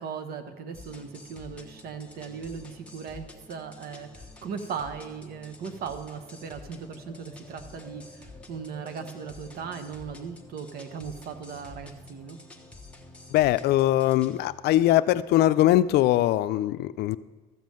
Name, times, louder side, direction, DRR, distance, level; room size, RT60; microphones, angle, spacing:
voice 1, 0.0-12.4, right 6 dB, 65° right, 8 dB, 1.1 m, -38 dB
sound 1, 0.7-14.4, left 2 dB, 5° left, 1.0 m, -48 dB
voice 2, 13.3-17.2, left 14 dB, 75° left, 14 dB, 0.4 m, -21 dB
13.5 x 5.4 x 7.7 m, 1.2 s
cardioid pair, 110°, 17 cm